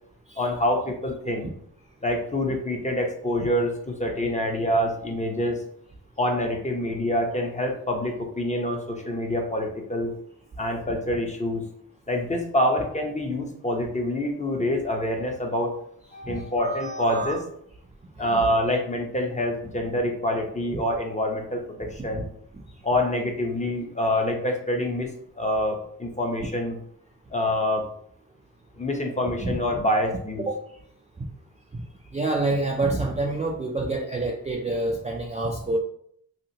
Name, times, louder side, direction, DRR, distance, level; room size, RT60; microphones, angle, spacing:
voice 1, 0.4-1.4 2.0-5.6 6.2-10.1 10.6-11.6 12.1-15.7 16.1-17.4 18.2-22.2 22.8-26.8 27.3-27.8 28.8-30.4, left 1 dB, 20° left, 2 dB, 0.7 m, -26 dB
voice 2, 32.1-35.8, right 2 dB, 20° right, -1 dB, 0.4 m, -27 dB
2.8 x 2.4 x 2.8 m, 0.67 s
supercardioid pair, 50°, 41 cm